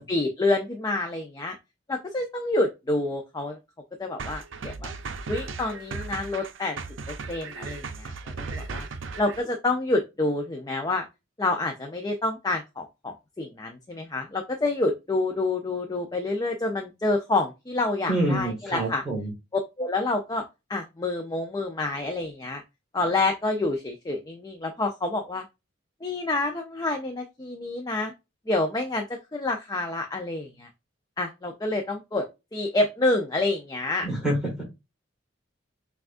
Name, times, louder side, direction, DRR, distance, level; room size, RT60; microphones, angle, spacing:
voice 1, 0.0-1.6 1.9-3.6 4.0-4.9 5.3-6.8 7.1-8.9 9.2-11.1 11.4-19.0 19.8-20.4 20.7-22.6 22.9-25.4 26.0-28.1 28.5-30.7 31.2-32.3 32.5-34.1, left 2 dB, 20° left, 4 dB, 0.5 m, -28 dB
sound 1, 4.2-9.4, right 4 dB, 75° right, 0.5 m, -36 dB
voice 2, 18.1-19.3 34.0-34.5, right 1 dB, 5° right, -3 dB, 1.3 m, -26 dB
6.0 x 2.4 x 2.5 m, 0.24 s
head